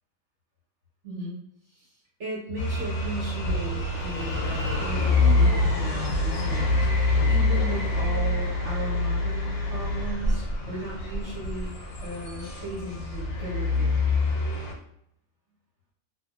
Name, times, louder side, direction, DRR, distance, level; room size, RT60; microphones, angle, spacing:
voice 1, 1.0-1.4 2.2-11.7 12.0-14.1, equal, 60° right, -6 dB, 1.4 m, -36 dB
sound 1, 2.6-14.7, left 2 dB, 85° left, 1.1 m, -25 dB
2.6 x 2.5 x 2.6 m, 0.72 s
omnidirectional pair, 1.4 m